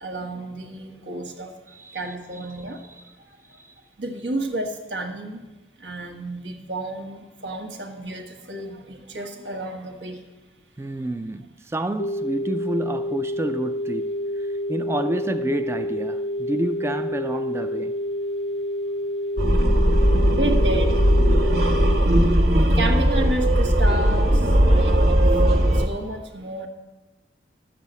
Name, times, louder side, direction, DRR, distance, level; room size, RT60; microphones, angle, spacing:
voice 1, 0.0-1.5 1.9-2.8 4.0-5.4 5.8-10.2 20.3-21.0 21.9-26.7, right 1 dB, 85° right, 1.6 m, -31 dB
voice 2, 1.7-2.6 2.8-3.1 3.6-3.7 10.8-18.0, right 1 dB, 15° right, 0.3 m, -30 dB
sound 1, 12.0-22.0, equal, 50° left, 0.4 m, -28 dB
sound 2, 19.4-25.9, equal, 65° right, 1.4 m, -18 dB
11.5 x 7.5 x 8.1 m
head